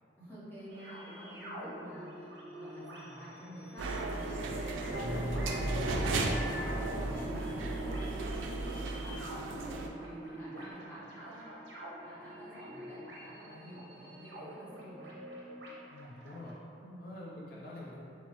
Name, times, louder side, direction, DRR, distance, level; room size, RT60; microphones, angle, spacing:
voice 1, 0.2-6.7 7.0-15.1 16.8-17.1, equal, 10° left, -9 dB, 0.9 m, -49 dB
sound 1, 0.7-16.5, right 1 dB, 65° right, 0.8 m, -46 dB
sound 2, 3.8-9.9, right 2 dB, 85° right, 0.4 m, -36 dB
sound 3, 4.9-8.6, equal, 10° right, 0.3 m, -38 dB
voice 2, 15.9-16.6 17.0-18.0, left 1 dB, 55° left, -6 dB, 0.5 m, -46 dB
5.9 x 2.0 x 2.9 m, 2.7 s
head